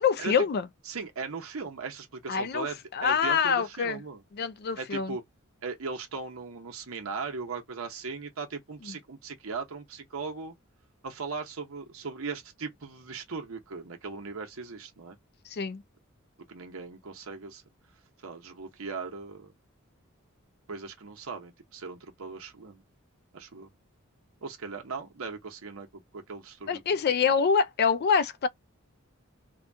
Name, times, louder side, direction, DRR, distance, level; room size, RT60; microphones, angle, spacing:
voice 1, 0.0-0.7 2.3-2.7 2.9-4.0 4.3-5.2 8.8-8.9 15.5-15.8 26.7-28.5, left 6 dB, 50° left, 0.4 m, -25 dB
voice 2, 0.9-4.2 4.8-5.2 5.6-10.5 11.0-15.2 16.5-17.6 18.2-19.5 20.7-22.8 23.3-23.7 24.4-25.9 26.1-27.0, right 4 dB, 85° right, 0.9 m, -38 dB
2.8 x 2.2 x 2.6 m
head